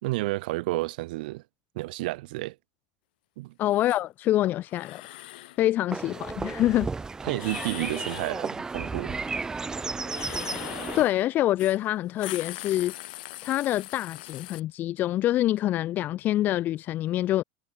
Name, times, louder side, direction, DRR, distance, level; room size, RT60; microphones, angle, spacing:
voice 1, 0.0-1.4 1.7-2.6 3.4-3.5 7.2-9.2, right 20 dB, 70° right, 1.3 m, -31 dB
voice 2, 3.6-5.0 5.6-6.9 10.9-12.9 13.4-17.4, left 14 dB, 40° left, 3.2 m, -26 dB
sound 1, 3.7-4.0 4.7-5.6 7.3-8.4 10.0-11.2 11.6-11.8 12.1-14.6, left 19 dB, 75° left, 6.4 m, -40 dB
sound 2, 5.9-11.0, right 4 dB, 15° right, 3.8 m, -33 dB
supercardioid pair, 135°, 5 cm